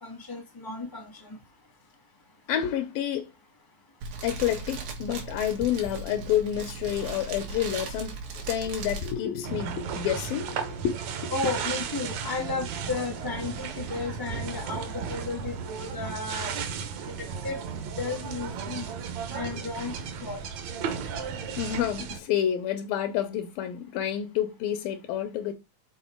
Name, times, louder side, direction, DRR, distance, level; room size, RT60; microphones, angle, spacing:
voice 1, 0.0-1.2 11.3-16.6 17.1-17.2 17.4-17.6 18.0-18.9 19.3-19.9 20.2-20.4, left 3 dB, 15° left, 0.6 m, -33 dB
voice 2, 2.5-3.3 4.2-8.2 8.5-11.0 21.6-25.5, left 10 dB, 85° left, 2.8 m, -29 dB
Fire, 4.0-9.1, right 4 dB, 85° right, 3.5 m, -37 dB
sound 1, 9.4-22.2, right 6 dB, 65° right, 2.0 m, -35 dB
7.6 x 4.3 x 4.5 m
omnidirectional pair, 4.0 m